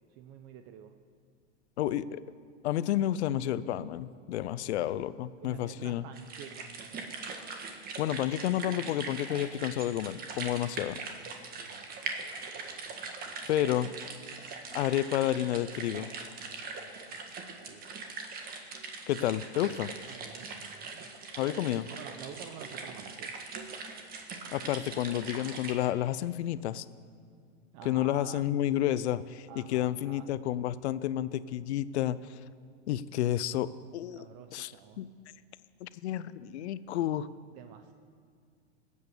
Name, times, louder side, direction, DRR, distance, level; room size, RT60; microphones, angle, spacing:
voice 1, 0.1-0.9 5.4-7.6 11.6-13.5 17.7-17.9 20.1-21.1 21.9-23.3 27.7-28.5 29.5-30.3 34.1-35.0 37.5-37.9, right 8 dB, 40° right, 8 dB, 0.8 m, -50 dB
voice 2, 1.8-2.2 2.6-6.0 8.0-11.0 13.5-13.9 14.7-16.1 19.1-19.9 21.4-21.9 24.5-26.8 27.8-32.2 32.9-34.2 34.5-35.1 35.8-37.3, left 12 dB, 70° left, 16 dB, 0.7 m, -30 dB
sound 1, 6.1-25.7, right 4 dB, 25° right, 1.6 m, -41 dB
20.0 x 8.7 x 6.8 m, 2.1 s
supercardioid pair, 135°, 34 cm